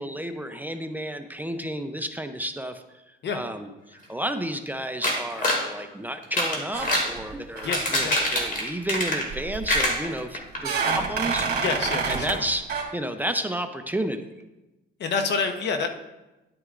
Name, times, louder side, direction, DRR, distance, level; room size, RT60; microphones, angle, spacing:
voice 1, 0.0-11.6 12.1-14.3, right 1 dB, 10° right, 7 dB, 0.6 m, -32 dB
sound 1, 5.0-5.7 6.2-7.1 7.6-9.4 9.7-10.6 11.0-11.1 11.4-11.5, left 1 dB, 45° left, 2.3 m, -25 dB
sound 2, 6.7-7.3 7.6-7.9 9.3-9.9 10.6-12.4 12.7-12.8, right 5 dB, 55° right, 2.3 m, -28 dB
voice 2, 7.6-8.1 11.6-12.4 15.0-15.9, left 5 dB, 60° left, 6 dB, 1.0 m, -27 dB
10.5 x 9.6 x 2.5 m, 1.0 s
cardioid pair, 90°, 20 cm